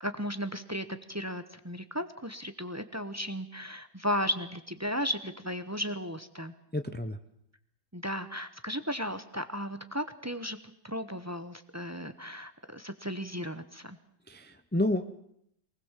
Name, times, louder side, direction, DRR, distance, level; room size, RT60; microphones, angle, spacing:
voice 1, 0.0-6.5 7.9-10.6 10.8-14.0, equal, 15° right, 10 dB, 0.8 m, -35 dB
voice 2, 6.7-7.2 14.3-15.0, left 1 dB, 10° left, 9 dB, 0.4 m, -30 dB
23.5 x 19.5 x 7.4 m, 0.73 s
omnidirectional pair, 1.8 m